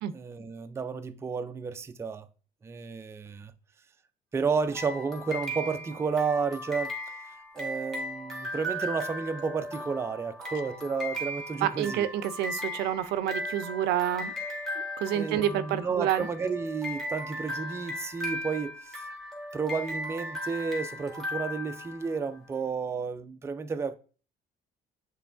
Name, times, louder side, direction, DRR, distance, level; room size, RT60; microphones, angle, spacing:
voice 1, 0.1-2.3 2.6-3.5 4.3-6.9 7.5-12.1 15.1-19.1 19.5-24.0, right 5 dB, 15° right, 0.3 m, -32 dB
sound 1, 4.7-22.4, left 1 dB, ahead, 1.1 m, -37 dB
voice 2, 11.6-14.3 15.0-16.3, right 11 dB, 80° right, 0.4 m, -28 dB
6.9 x 3.1 x 2.4 m
cardioid pair, 110°, 17 cm